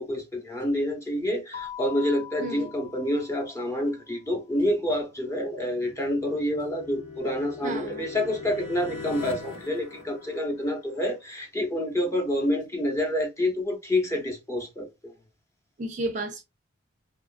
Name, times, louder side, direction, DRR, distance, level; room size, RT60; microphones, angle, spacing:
voice 1, 0.0-15.1, left 1 dB, 15° left, 0.6 m, -28 dB
Keyboard (musical), 1.5-4.1, left 9 dB, 45° left, 0.8 m, -42 dB
sound 1, 5.2-11.0, left 4 dB, 80° left, 0.8 m, -41 dB
voice 2, 7.6-8.0 15.8-16.4, right 2 dB, 35° right, 0.4 m, -32 dB
2.8 x 2.4 x 2.4 m
head